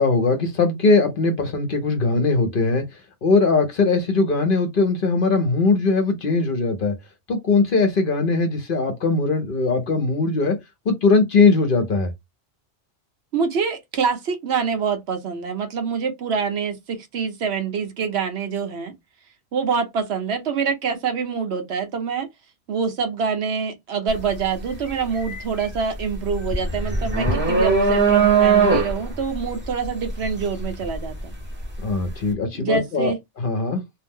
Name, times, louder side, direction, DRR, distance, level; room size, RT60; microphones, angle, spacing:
voice 1, 0.0-2.9 3.2-6.9 7.3-10.6 10.9-12.1 31.8-33.8, left 3 dB, 55° left, 0.8 m, -20 dB
voice 2, 13.3-18.9 19.5-22.3 22.7-31.3 32.5-33.2, right 6 dB, 65° right, 0.9 m, -25 dB
sound 1, 24.1-24.3 24.7-31.7, right 4 dB, 10° right, 0.8 m, -20 dB
2.7 x 2.0 x 3.5 m
omnidirectional pair, 1.2 m